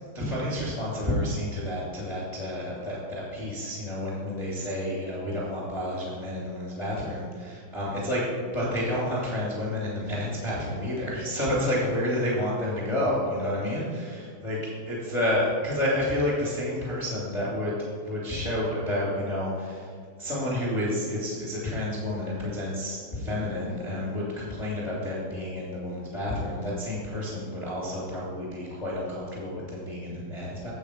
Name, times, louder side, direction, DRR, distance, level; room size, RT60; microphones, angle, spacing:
voice 1, 0.1-8.2 8.5-14.6 14.8-17.7 18.0-19.9 20.2-30.7, left 1 dB, 35° left, -6 dB, 1.1 m, -30 dB
9.2 x 7.6 x 4.9 m, 2.1 s
omnidirectional pair, 5.5 m